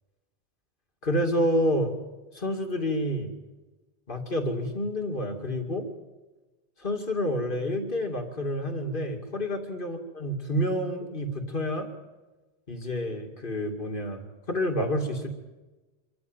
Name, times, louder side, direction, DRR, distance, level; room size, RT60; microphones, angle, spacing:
voice 1, 1.0-1.9 2.3-3.3 4.1-5.9 6.8-11.9 12.7-15.3, equal, 55° left, 4 dB, 2.6 m, -29 dB
25.5 x 14.5 x 9.0 m, 1.2 s
omnidirectional pair, 1.0 m